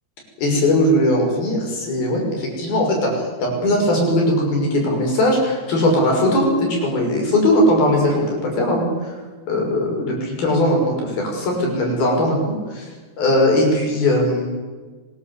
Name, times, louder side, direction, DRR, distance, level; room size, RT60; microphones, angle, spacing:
voice 1, 0.4-9.2 9.5-12.9 13.2-14.5, left 1 dB, 65° left, 1 dB, 7.9 m, -19 dB
24.5 x 20.5 x 8.3 m, 1.4 s
omnidirectional pair, 4.6 m